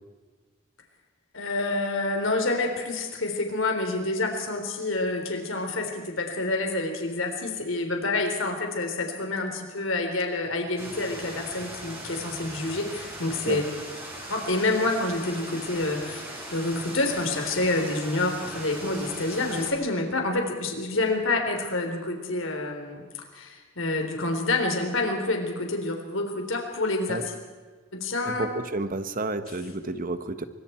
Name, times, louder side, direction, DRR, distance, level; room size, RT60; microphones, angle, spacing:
voice 1, 1.3-13.6 14.3-16.2 16.5-23.0 23.3-27.2 27.9-28.5, left 2 dB, 75° left, 3 dB, 3.8 m, -28 dB
sound 1, 10.8-19.7, right 1 dB, 15° right, 7.3 m, -39 dB
voice 2, 28.2-30.4, right 2 dB, 45° right, 10 dB, 1.3 m, -31 dB
25.0 x 23.5 x 4.5 m, 1.4 s
head